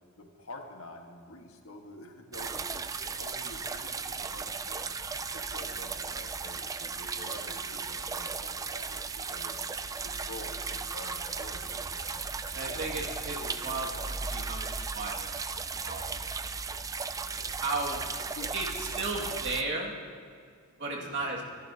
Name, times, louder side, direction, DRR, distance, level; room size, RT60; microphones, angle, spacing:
voice 1, 0.2-9.6 10.0-12.2 12.6-13.9 18.3-18.5 18.9-19.2 20.9-21.4, left 1 dB, 65° left, 2 dB, 1.5 m, -48 dB
sound 1, 2.3-19.6, right 4 dB, 15° right, 0.3 m, -36 dB
voice 2, 12.5-13.4 13.6-15.4 15.8-16.2 17.6-18.0 18.5-20.0 20.8-21.4, right 3 dB, 55° right, -2 dB, 2.2 m, -34 dB
25.5 x 11.0 x 2.8 m, 2.2 s
head